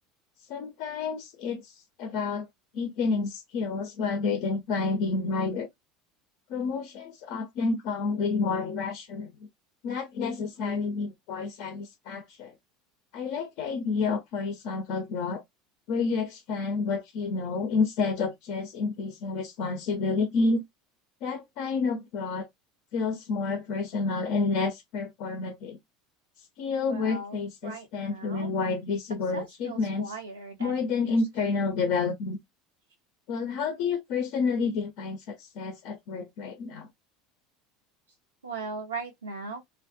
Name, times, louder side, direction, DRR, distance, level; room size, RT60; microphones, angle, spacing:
voice 1, 0.5-2.5 2.7-5.7 6.5-9.5 9.8-12.5 13.1-15.4 15.9-20.6 21.2-22.5 22.9-25.8 26.6-30.2 30.6-32.4 33.3-36.9, left 4 dB, 55° left, 0.5 m, -29 dB
voice 2, 26.8-28.5 29.3-31.5 38.4-39.6, right 3 dB, 85° right, 0.4 m, -39 dB
2.2 x 2.0 x 2.7 m
figure-of-eight pair, 75°, 0 cm